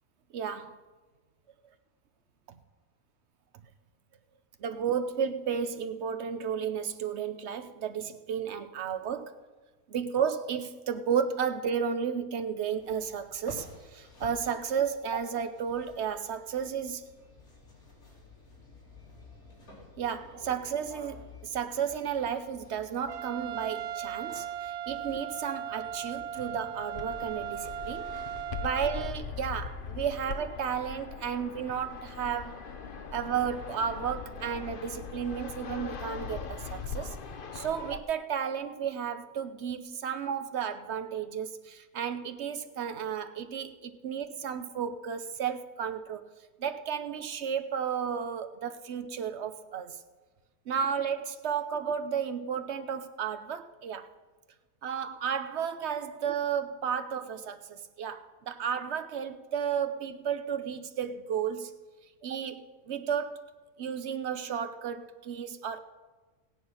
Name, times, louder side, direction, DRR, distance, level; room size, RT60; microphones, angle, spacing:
voice 1, 0.3-0.8 2.5-2.6 4.6-9.3 9.9-17.0 20.0-28.1 28.6-32.6 33.1-37.2 37.5-46.3 46.6-50.0 50.7-54.1 54.8-61.7 62.2-63.5 63.8-65.8, right 7 dB, 55° right, 10 dB, 0.9 m, -33 dB
sound 1, 12.8-28.6, left 2 dB, 75° left, 3.6 m, -52 dB
Trumpet, 23.1-29.1, right 9 dB, 90° right, 1.1 m, -38 dB
Fixed-wing aircraft airplane, 26.9-38.0, left 5 dB, 45° left, 0.8 m, -40 dB
16.0 x 9.5 x 5.7 m, 1.3 s
omnidirectional pair, 1.6 m